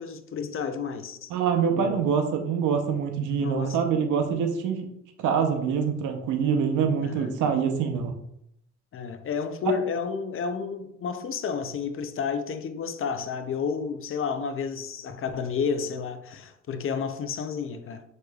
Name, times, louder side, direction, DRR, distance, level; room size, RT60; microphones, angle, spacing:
voice 1, 0.0-1.3 1.7-2.1 3.4-3.8 7.0-7.4 8.9-18.0, left 6 dB, 45° left, 0.5 m, -31 dB
voice 2, 1.3-4.9 5.2-8.1 9.7-9.8, right 6 dB, 85° right, 0.7 m, -25 dB
6.2 x 3.2 x 2.3 m
cardioid pair, 90°, 30 cm